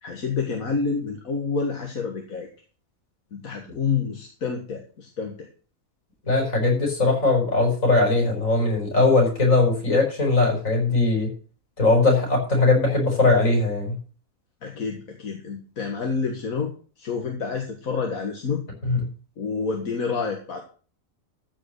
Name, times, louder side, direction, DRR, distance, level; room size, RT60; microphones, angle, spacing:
voice 1, 0.0-2.5 3.3-5.5 14.6-16.7 17.0-18.6 19.4-20.7, left 5 dB, 90° left, 2 dB, 2.0 m, -28 dB
voice 2, 6.3-11.3 11.8-14.0 18.8-19.0, left 3 dB, 75° left, 0 dB, 5.4 m, -20 dB
14.5 x 5.1 x 6.5 m, 0.39 s
omnidirectional pair, 1.4 m